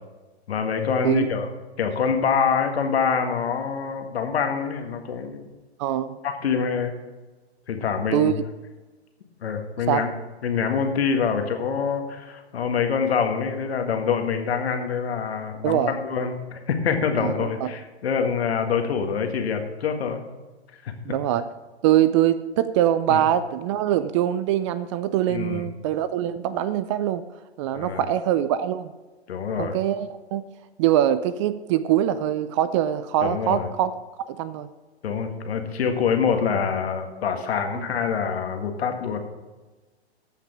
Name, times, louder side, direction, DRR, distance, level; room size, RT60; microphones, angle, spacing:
voice 1, 0.5-1.5 1.8-5.5 6.2-6.9 7.7-8.3 9.4-10.1 10.4-20.2 20.8-20.9 23.1-23.2 25.3-25.7 27.7-28.0 29.3-29.7 33.2-33.7 35.0-39.2, left 6 dB, 70° left, 5 dB, 1.9 m, -25 dB
voice 2, 5.8-6.2 8.1-8.3 9.9-10.1 15.6-15.9 17.2-17.7 21.0-21.4 21.8-27.2 27.6-28.9 29.6-30.5 30.8-33.9 34.3-34.7 37.7-37.9, right 11 dB, 30° right, 14 dB, 0.4 m, -23 dB
15.0 x 5.8 x 5.9 m, 1.2 s
hypercardioid pair, 115°, 33 cm